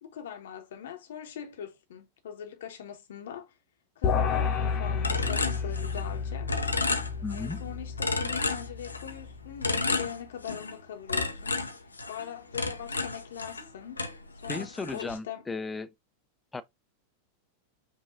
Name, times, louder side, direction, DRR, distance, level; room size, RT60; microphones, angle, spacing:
voice 1, 0.0-3.6 4.0-6.5 7.3-11.6 12.1-15.4, left 9 dB, 60° left, 0.9 m, -42 dB
sound 1, 4.0-9.5, left 6 dB, 35° left, 0.9 m, -31 dB
sound 2, 5.0-6.2 6.5-7.6 8.0-9.2 9.6-10.8 11.1-13.7 14.0-15.2, left 3 dB, 80° left, 0.6 m, -31 dB
voice 2, 7.2-7.6 14.5-15.9 16.5-16.6, left 4 dB, 10° left, 0.5 m, -35 dB
5.6 x 2.5 x 2.7 m
figure-of-eight pair, 90°, 0 cm